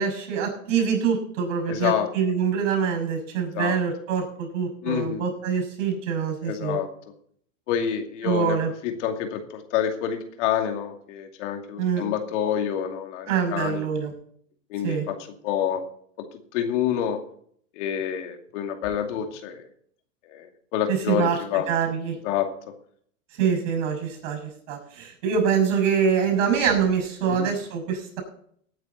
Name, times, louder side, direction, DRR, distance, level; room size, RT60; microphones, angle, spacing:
voice 1, 0.0-6.8 8.2-8.7 11.8-12.0 13.3-14.1 14.8-15.0 20.9-21.4 21.7-22.2 23.3-24.4 24.7-28.2, right 7 dB, 70° right, 5 dB, 6.4 m, -25 dB
voice 2, 1.7-2.1 3.5-3.7 4.8-5.2 6.4-6.9 7.7-8.6 8.8-13.9 14.7-15.2 15.4-15.8 16.5-17.2 17.8-19.7 20.3-20.5 20.7-21.7 22.2-22.5 27.3-27.5, left 9 dB, 65° left, 5 dB, 2.5 m, -27 dB
17.0 x 9.3 x 4.1 m, 0.62 s
hypercardioid pair, 105°, 38 cm